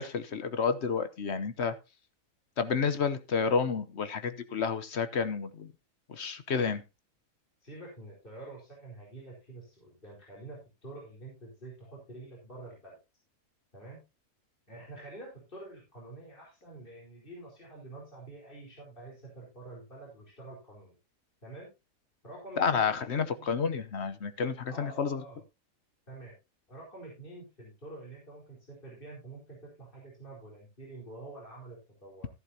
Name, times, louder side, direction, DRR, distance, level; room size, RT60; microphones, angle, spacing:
voice 1, 0.0-1.7 2.6-5.7 6.1-6.8 22.6-25.2, left 5 dB, 55° left, 11 dB, 1.1 m, -30 dB
voice 2, 7.6-13.0 13.7-14.0 14.7-21.0 21.4-21.7 22.2-23.6 24.7-25.4 26.1-26.3 26.7-32.3, right 2 dB, 40° left, -4 dB, 4.6 m, -47 dB
13.5 x 11.0 x 2.8 m, 0.25 s
omnidirectional pair, 1.5 m